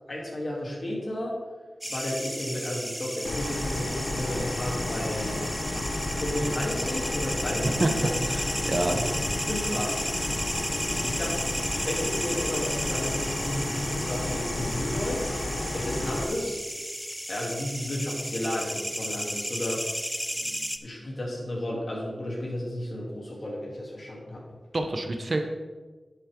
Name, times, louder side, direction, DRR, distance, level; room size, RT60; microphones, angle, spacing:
voice 1, 0.1-1.4 1.9-5.4 6.1-8.1 8.9-10.0 10.9-11.5 11.8-15.3 15.7-16.6 17.3-19.9 20.3-24.4, left 1 dB, 50° left, -4 dB, 3.3 m, -33 dB
sound 1, 1.8-20.8, equal, 5° right, 0.6 m, -33 dB
sound 2, 3.2-16.2, left 2 dB, 80° left, 1.1 m, -32 dB
voice 2, 8.3-9.0 24.7-25.4, right 2 dB, 45° right, 3 dB, 1.1 m, -27 dB
11.0 x 8.0 x 3.9 m, 1.3 s
wide cardioid pair, 75°, 0 cm